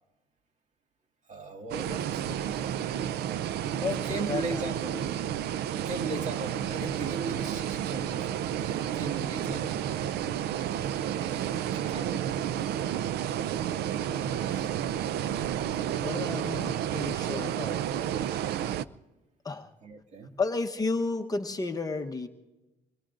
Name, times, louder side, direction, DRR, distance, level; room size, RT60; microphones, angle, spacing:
voice 1, 1.3-2.8 3.9-5.2 5.7-9.8 10.6-11.0 11.3-12.7 19.8-20.3, right 3 dB, 45° right, 3 dB, 2.1 m, -38 dB
sound 1, 1.7-18.8, right 10 dB, 75° right, 0.5 m, -31 dB
voice 2, 3.8-4.7 9.3-9.8 14.1-14.7 16.0-18.1 19.4-19.7 20.4-22.3, left 3 dB, 20° left, 4 dB, 1.0 m, -33 dB
26.0 x 22.0 x 2.5 m, 1.0 s
cardioid pair, 110°, 17 cm